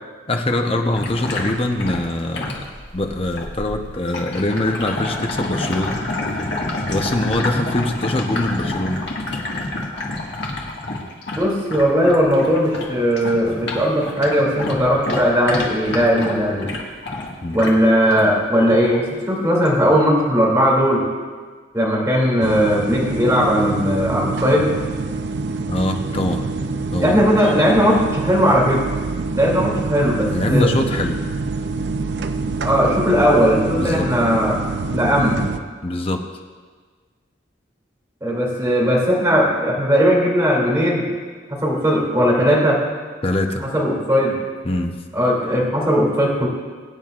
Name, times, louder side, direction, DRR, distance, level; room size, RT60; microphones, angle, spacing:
voice 1, 0.3-2.6 2.9-6.0 6.8-9.0 17.4-17.6 25.7-26.5 26.9-27.2 30.3-31.2 33.7-34.1 35.8-36.2 43.2-43.7 44.6-45.0, left 1 dB, 30° left, 3 dB, 0.8 m, -23 dB
sound 1, 0.9-12.9 13.2-18.3 18.7-19.0 19.6-19.8, left 2 dB, 65° left, 1.8 m, -28 dB
voice 2, 11.4-16.7 17.5-21.0 21.7-24.7 27.0-28.8 29.3-30.7 32.6-34.6 34.9-35.4 38.2-41.1 41.5-42.8 43.6-44.4 45.1-46.5, equal, 15° right, -4 dB, 2.7 m, -18 dB
sound 2, 22.4-35.6, right 3 dB, 60° right, 0.5 m, -26 dB
22.0 x 9.1 x 2.5 m, 1.5 s
head